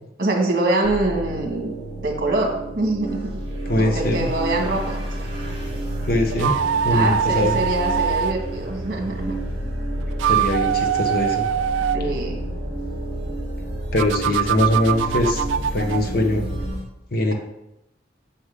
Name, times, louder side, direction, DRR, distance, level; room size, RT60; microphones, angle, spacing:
voice 1, 0.2-1.8 2.0-3.4 3.8-5.0 6.9-9.4 11.9-12.4, right 2 dB, 50° right, 1 dB, 2.0 m, -24 dB
sound 1, 0.8-16.7, right 1 dB, 15° left, 2.7 m, -31 dB
sound 2, 3.0-16.8, equal, 30° right, 3.0 m, -35 dB
voice 2, 3.7-4.3 6.0-7.6 10.2-11.5 11.8-11.9 13.9-15.4 15.7-16.4 17.1-17.3, left 1 dB, 55° left, 4 dB, 1.2 m, -22 dB
sound 3, 6.3-8.4 10.0-12.0 14.0-16.1, right 9 dB, 85° right, 0.4 m, -23 dB
9.8 x 6.1 x 3.8 m, 0.88 s
head